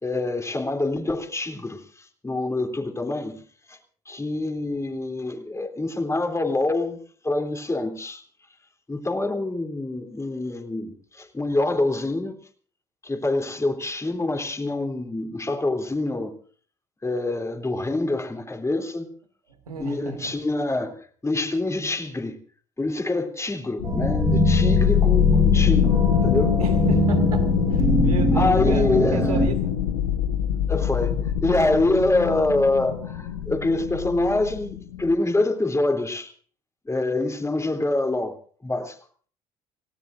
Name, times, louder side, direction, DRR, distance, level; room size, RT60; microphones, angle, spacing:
voice 1, 0.0-1.8 2.2-3.4 3.7-3.8 4.1-7.0 7.2-8.2 8.9-12.4 13.0-16.4 17.0-19.1 19.8-22.3 22.8-26.5 28.3-29.3 30.7-36.3 36.8-38.4 38.6-39.0, left 2 dB, 15° left, 4 dB, 3.3 m, -25 dB
voice 2, 19.7-20.3 26.6-29.8, right 5 dB, 85° right, 5 dB, 2.4 m, -33 dB
sound 1, 23.8-35.1, left 10 dB, 75° left, 1.5 m, -23 dB
sound 2, 23.8-29.5, right 2 dB, 20° right, 3.6 m, -23 dB
28.5 x 17.5 x 2.6 m, 0.44 s
figure-of-eight pair, 55°, 19 cm